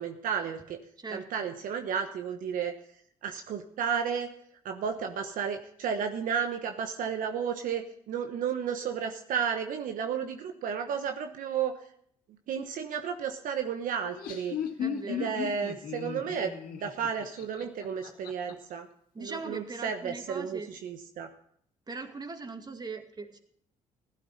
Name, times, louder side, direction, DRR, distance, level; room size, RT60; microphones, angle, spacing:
voice 1, 0.0-0.8 1.1-2.7 3.2-4.3 4.6-11.7 12.5-14.6 15.1-18.9 19.2-21.3, right 7 dB, 70° right, 6 dB, 1.1 m, -33 dB
voice 2, 1.0-1.5 14.8-15.4 19.1-20.7 21.9-23.4, right 3 dB, 30° right, 6 dB, 2.2 m, -40 dB
Laughter, 13.9-18.5, left 7 dB, 75° left, 2.3 m, -36 dB
15.5 x 12.5 x 4.2 m, 0.66 s
supercardioid pair, 70°, 15 cm